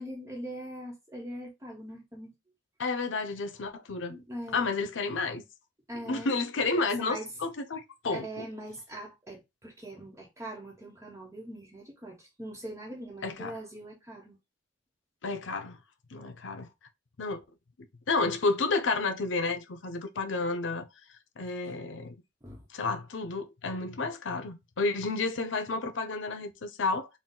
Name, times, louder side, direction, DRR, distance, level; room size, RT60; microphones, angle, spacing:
voice 1, 0.0-2.3 4.1-4.6 5.9-6.3 6.7-7.3 8.1-14.4 22.4-22.6, right 1 dB, 15° right, 1.0 m, -42 dB
voice 2, 2.8-4.2 4.5-5.4 6.1-8.5 13.2-13.5 15.2-15.8 16.1-16.7 17.2-17.4 18.1-20.9 21.4-22.2 22.7-27.1, left 3 dB, 90° left, 0.6 m, -31 dB
4.1 x 2.3 x 3.7 m
head